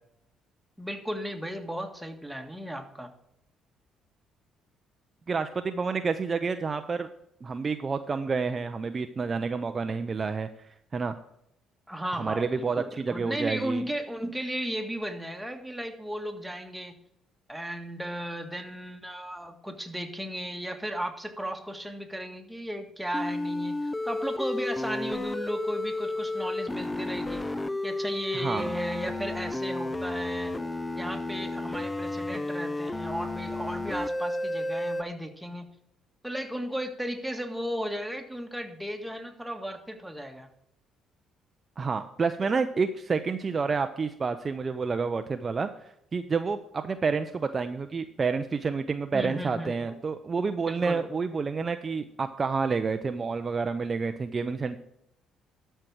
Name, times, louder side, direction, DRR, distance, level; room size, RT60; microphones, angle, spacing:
voice 1, 0.8-3.1 11.9-16.9 17.5-27.4 27.8-30.5 31.0-35.7 36.2-40.5 49.1-49.7 50.7-51.0, equal, 5° right, 3 dB, 1.6 m, -35 dB
voice 2, 5.3-7.1 7.4-10.5 10.9-11.1 12.1-13.8 28.3-28.7 41.8-45.7 46.1-54.8, right 5 dB, 40° right, 8 dB, 0.6 m, -29 dB
sound 1, 23.1-35.0, left 2 dB, 15° left, 0.6 m, -32 dB
12.5 x 4.5 x 6.2 m, 0.77 s
hypercardioid pair, 55°, 0 cm